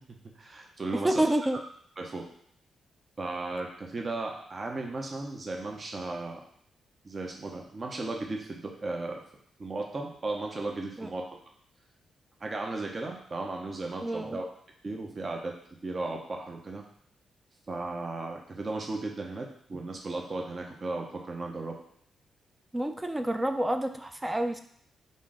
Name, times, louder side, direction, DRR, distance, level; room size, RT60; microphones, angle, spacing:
voice 1, 0.4-1.3 2.0-2.2 3.2-6.4 7.0-9.2 9.6-11.4 12.4-14.4 14.8-15.5 15.8-16.8 17.7-21.7, right 2 dB, 45° right, 1 dB, 0.7 m, -35 dB
voice 2, 1.0-1.6 11.0-11.1 14.0-14.4 22.7-24.6, right 1 dB, 15° right, 7 dB, 0.4 m, -28 dB
3.6 x 2.6 x 3.7 m, 0.65 s
supercardioid pair, 55°, 0 cm